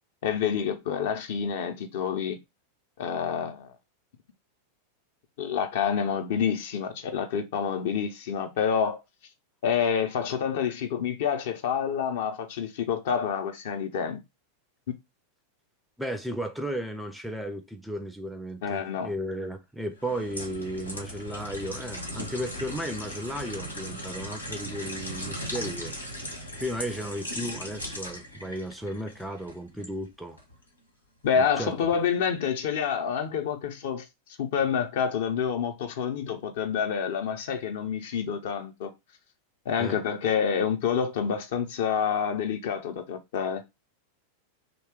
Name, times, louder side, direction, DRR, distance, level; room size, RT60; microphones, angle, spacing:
voice 1, 0.2-2.4 3.0-3.7 5.4-9.0 9.6-14.2 18.6-19.1 31.2-34.0 34.4-38.9 39.7-43.6, left 7 dB, 55° left, 0.6 m, -28 dB
voice 2, 16.0-25.9 26.2-26.3 26.6-30.4 31.4-31.7 39.8-40.0, equal, ahead, 0.4 m, -34 dB
sound 1, 20.0-29.9 30.4-30.6, equal, 85° left, 0.8 m, -38 dB
2.8 x 2.2 x 3.4 m
figure-of-eight pair, 90°, 0 cm